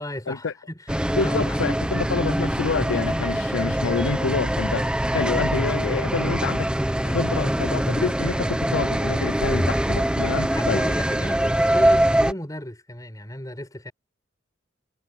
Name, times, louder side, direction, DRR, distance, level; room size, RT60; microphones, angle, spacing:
voice 1, 0.0-1.6 10.5-13.9, left 1 dB, 20° left, 5.7 m, -35 dB
sound 1, 0.9-12.3, right 1 dB, 5° right, 1.0 m, -23 dB
voice 2, 1.2-6.7 7.0-10.8, left 4 dB, 90° left, 0.6 m, -27 dB
head